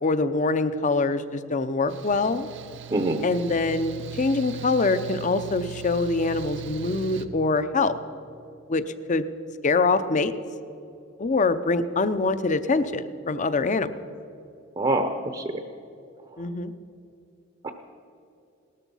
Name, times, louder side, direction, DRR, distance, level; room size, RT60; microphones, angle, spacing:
voice 1, 0.0-2.5 3.2-7.9 8.7-8.8 9.1-9.3 9.6-10.3 11.2-13.9 16.4-16.7, left 3 dB, 35° left, 12 dB, 0.6 m, -24 dB
Mechanical fan, 1.9-7.2, right 8 dB, 60° right, 0.8 m, -39 dB
voice 2, 2.9-3.2 14.8-15.5 17.6-17.7, right 2 dB, 25° right, 7 dB, 0.7 m, -25 dB
18.0 x 13.5 x 5.5 m, 2.7 s
head